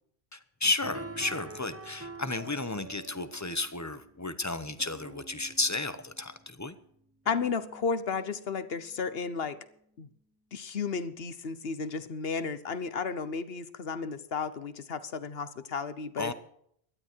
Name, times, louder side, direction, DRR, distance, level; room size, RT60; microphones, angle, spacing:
voice 1, 0.3-6.7 16.2-16.3, left 2 dB, 15° left, 12 dB, 0.9 m, -33 dB
sound 1, 0.8-9.0, right 1 dB, 15° right, 1.3 m, -47 dB
voice 2, 7.3-9.6 10.0-10.1 10.5-16.3, left 5 dB, 65° left, 13 dB, 1.2 m, -33 dB
17.5 x 12.5 x 4.6 m, 0.67 s
omnidirectional pair, 1.1 m